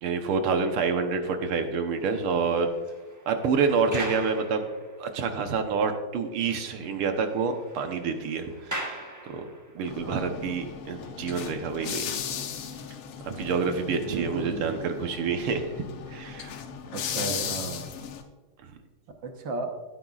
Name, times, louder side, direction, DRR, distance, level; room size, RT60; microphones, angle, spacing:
voice 1, 0.0-2.7 3.3-4.7 5.0-9.0 9.2-9.5 9.8-12.1 13.3-15.7 16.1-16.5, right 5 dB, 80° right, 6 dB, 1.9 m, -27 dB
sound 1, 1.8-5.3 5.8-5.9 6.2-6.3 6.6-9.9, right 1 dB, 30° right, 0.3 m, -41 dB
sound 2, 9.9-18.2, left 8 dB, 85° left, 1.7 m, -37 dB
voice 2, 10.0-10.5 13.9-14.9 16.9-17.8 19.2-19.7, right 3 dB, 60° right, 4 dB, 1.7 m, -34 dB
15.5 x 9.1 x 2.4 m, 1.3 s
omnidirectional pair, 2.4 m